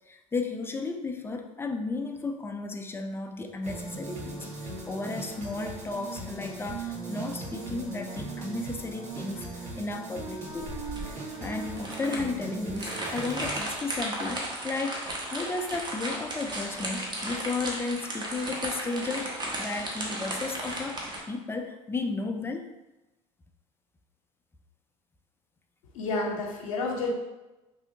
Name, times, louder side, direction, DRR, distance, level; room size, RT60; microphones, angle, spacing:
voice 1, 0.1-19.3 19.6-22.7, left 3 dB, 15° left, 4 dB, 0.4 m, -34 dB
sound 1, 3.6-13.6, right 2 dB, 45° right, 1.5 m, -38 dB
sound 2, 10.6-21.2, right 1 dB, 25° right, 0.9 m, -35 dB
voice 2, 25.9-27.1, left 2 dB, 85° left, 0 dB, 0.6 m, -30 dB
3.3 x 2.7 x 2.7 m, 1.0 s
hypercardioid pair, 80°, 17 cm